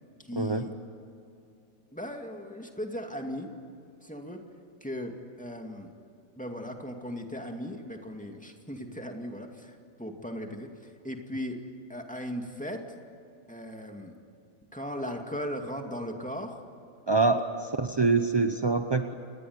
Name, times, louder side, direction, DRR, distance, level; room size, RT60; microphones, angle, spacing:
voice 1, 0.2-0.7 1.9-3.5 4.0-4.4 4.8-5.9 6.4-11.6 11.9-13.0 13.5-14.1 14.7-16.6, equal, 5° left, 3 dB, 2.2 m, -37 dB
voice 2, 17.1-19.1, right 3 dB, 25° right, 7 dB, 0.5 m, -25 dB
28.0 x 20.0 x 9.5 m, 2.7 s
omnidirectional pair, 1.8 m